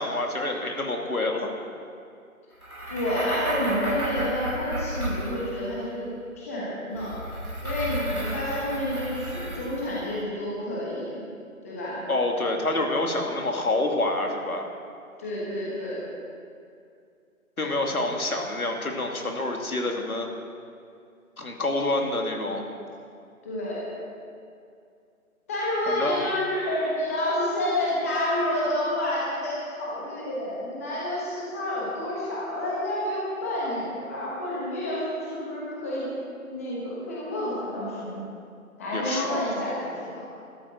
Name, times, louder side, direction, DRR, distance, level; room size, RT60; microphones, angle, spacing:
voice 1, 0.0-1.5 12.1-14.7 17.6-20.3 21.4-22.6 25.9-26.2 38.9-39.3, left 2 dB, 75° left, 2 dB, 2.5 m, -27 dB
sound 1, 2.6-5.9 6.9-10.1, equal, 90° right, 3.5 m, -33 dB
voice 2, 2.9-6.1 6.4-7.2 7.6-11.2 11.6-12.0 15.2-16.0 23.4-23.9 25.5-36.1 36.5-38.2 38.8-40.2, left 1 dB, 10° left, -6 dB, 1.3 m, -29 dB
13.0 x 9.1 x 8.3 m, 2.4 s
figure-of-eight pair, 160°, 43 cm